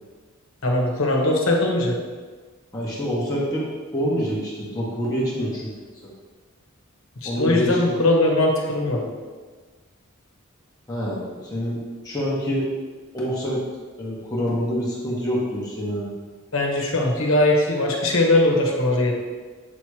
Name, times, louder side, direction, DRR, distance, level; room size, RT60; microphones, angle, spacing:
voice 1, 0.6-2.0 7.2-9.0 16.5-19.1, left 1 dB, 75° left, 0 dB, 1.2 m, -20 dB
voice 2, 2.7-3.7 3.9-5.7 6.0-6.1 7.2-7.9 10.9-12.7 13.1-13.6 14.0-16.1, equal, 20° left, -6 dB, 1.2 m, -26 dB
8.1 x 3.0 x 4.8 m, 1.4 s
head